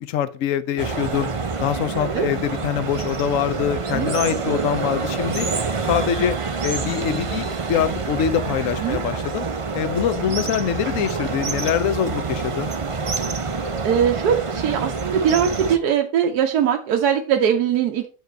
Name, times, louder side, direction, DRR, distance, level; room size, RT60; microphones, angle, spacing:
voice 1, 0.0-1.3 1.6-5.5 5.9-6.4 6.6-9.5 9.7-12.7, left 9 dB, 65° left, 1.0 m, -24 dB
sound 1, 0.8-15.8, right 4 dB, 55° right, 0.3 m, -27 dB
voice 2, 13.8-18.1, right 8 dB, 80° right, 1.3 m, -21 dB
8.0 x 5.0 x 4.5 m
omnidirectional pair, 1.7 m